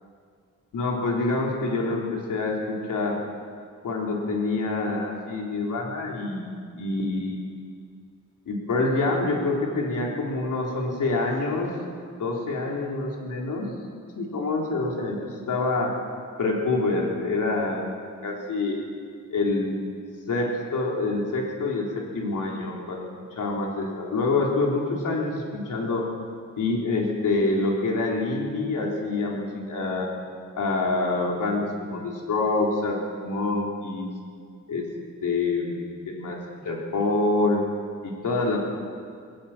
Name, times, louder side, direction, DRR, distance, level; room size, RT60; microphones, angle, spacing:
voice 1, 0.7-3.2 3.8-7.4 8.5-11.7 12.2-13.7 14.1-15.9 16.4-18.8 19.3-19.8 20.3-23.1 23.4-26.0 26.6-30.1 30.6-33.0 33.2-34.1 34.7-34.8 35.2-37.6 38.0-38.6, left 3 dB, 90° left, -2 dB, 3.8 m, -26 dB
20.5 x 19.0 x 7.4 m, 2.1 s
wide cardioid pair, 110°, 30 cm